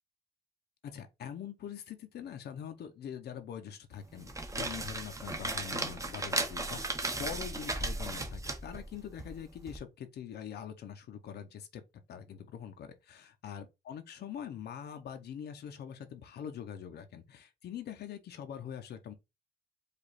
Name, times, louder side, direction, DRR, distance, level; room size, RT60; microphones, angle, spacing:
voice 1, 0.8-11.8 12.1-19.1, left 8 dB, 70° left, 0.7 m, -44 dB
sound 1, 4.1-9.8, right 2 dB, 20° right, 0.8 m, -36 dB
5.0 x 2.5 x 4.0 m
cardioid pair, 115°, 18 cm